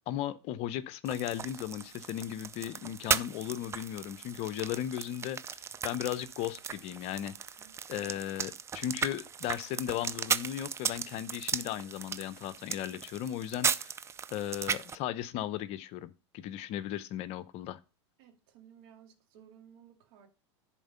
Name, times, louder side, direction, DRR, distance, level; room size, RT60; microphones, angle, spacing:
voice 1, 0.0-7.3 7.9-14.0 14.3-17.8, left 12 dB, 45° left, 0.7 m, -36 dB
sound 1, 1.0-14.9, right 7 dB, 20° right, 0.4 m, -36 dB
voice 2, 18.2-20.3, right 9 dB, 55° right, 2.4 m, -57 dB
11.0 x 4.4 x 5.5 m
hypercardioid pair, 105°, 15 cm